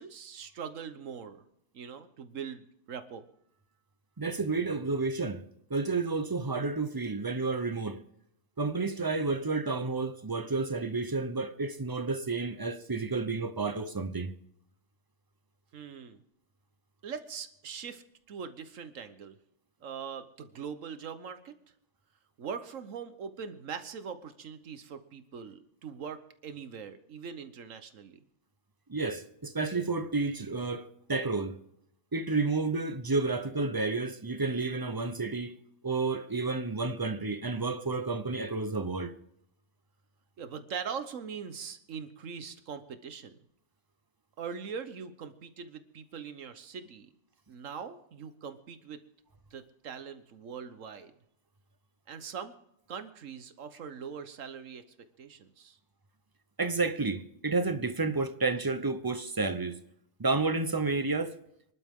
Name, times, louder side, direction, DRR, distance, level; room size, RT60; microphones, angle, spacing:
voice 1, 0.0-1.4 1.7-3.3 15.7-16.2 17.0-19.4 19.8-21.6 22.4-28.2 40.4-43.4 44.4-47.1 47.5-49.0 49.5-51.1 52.1-52.5 52.9-54.8 55.2-55.8, right 6 dB, 70° right, 1.4 m, -42 dB
voice 2, 4.2-5.4 5.7-8.0 8.6-14.3 28.9-31.6 32.1-35.6 35.8-39.1 56.6-59.8 60.2-61.4, right 3 dB, 20° right, 0.6 m, -31 dB
26.0 x 11.5 x 3.7 m
omnidirectional pair, 1.4 m